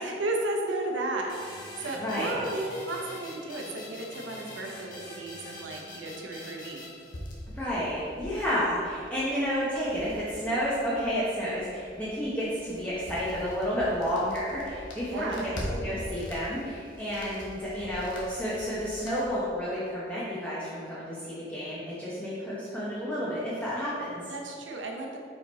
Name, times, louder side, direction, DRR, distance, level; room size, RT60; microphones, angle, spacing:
voice 1, 0.0-6.8 15.0-15.5 24.3-25.2, right 2 dB, 90° right, 0 dB, 0.8 m, -34 dB
sound 1, 1.3-7.7, left 2 dB, 45° left, 1.2 m, -45 dB
voice 2, 2.0-2.4 7.5-24.2, equal, 10° left, -9 dB, 0.9 m, -31 dB
sound 2, 7.1-19.3, equal, 90° left, 1.1 m, -43 dB
5.2 x 4.8 x 4.1 m, 2.4 s
head